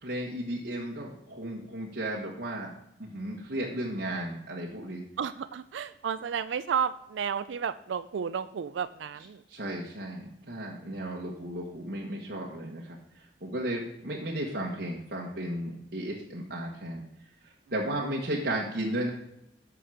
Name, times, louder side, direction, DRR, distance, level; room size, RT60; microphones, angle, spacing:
voice 1, 0.0-2.7 3.0-5.0 9.5-13.0 13.4-17.0 17.7-19.1, right 1 dB, 55° right, -3 dB, 1.4 m, -34 dB
voice 2, 5.2-9.4, right 7 dB, 85° right, 13 dB, 0.4 m, -32 dB
10.0 x 6.2 x 4.9 m, 0.78 s
head